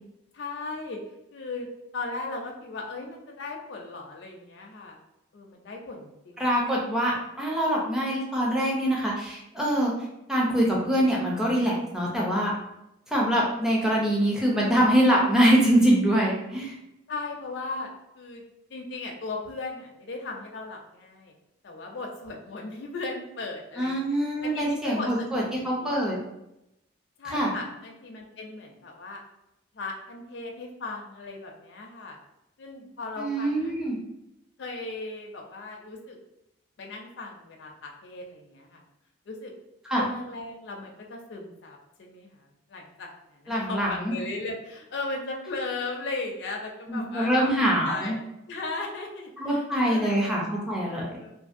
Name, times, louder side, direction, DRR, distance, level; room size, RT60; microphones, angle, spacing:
voice 1, 0.3-1.0 1.3-1.7 1.9-5.0 5.3-6.7 17.1-17.9 18.2-18.4 18.7-21.3 21.6-24.2 24.4-26.2 27.2-29.2 29.7-32.2 32.6-33.7 34.6-36.2 36.8-38.8 39.3-39.5 40.0-47.5 47.8-50.3 50.8-51.3, left 3 dB, 60° left, 1 dB, 0.4 m, -37 dB
voice 2, 6.4-9.9 10.3-12.5 13.1-16.7 23.8-26.2 27.3-27.5 33.2-34.0 39.9-40.0 43.5-44.1 46.9-48.1 49.4-51.1, equal, 5° right, -4 dB, 0.5 m, -24 dB
2.6 x 2.6 x 2.5 m, 0.87 s
head